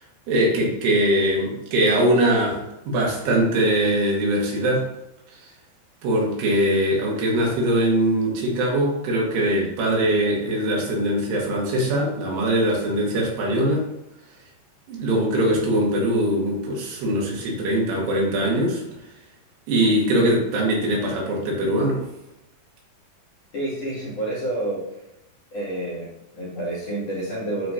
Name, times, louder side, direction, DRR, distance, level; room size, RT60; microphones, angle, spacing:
voice 1, 0.3-2.6 2.9-4.9 5.3-5.4 6.0-13.9 14.9-18.8 19.7-22.0, right 1 dB, 80° right, -2 dB, 3.6 m, -22 dB
voice 2, 23.5-24.8 25.5-27.7, right 1 dB, 45° left, -8 dB, 2.9 m, -29 dB
12.0 x 4.8 x 2.7 m, 0.88 s
omnidirectional pair, 4.7 m